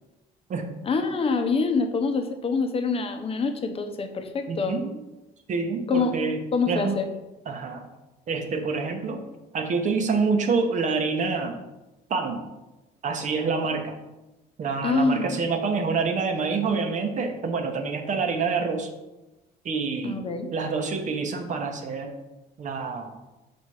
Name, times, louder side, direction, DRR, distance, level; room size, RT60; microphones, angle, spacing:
voice 1, 0.8-4.8 5.9-6.1 6.5-7.1 14.8-15.4 20.0-20.5, left 4 dB, 35° left, 6 dB, 0.8 m, -25 dB
voice 2, 4.5-5.0 5.5-6.4 6.7-7.0 7.5-7.8 8.3-9.2 9.5-11.6 12.1-12.4 13.0-13.9 14.6-18.9 19.6-20.2 20.5-22.1 22.6-23.1, right 4 dB, 45° right, 5 dB, 1.0 m, -27 dB
5.9 x 4.3 x 4.8 m, 1.0 s
cardioid pair, 110°, 17 cm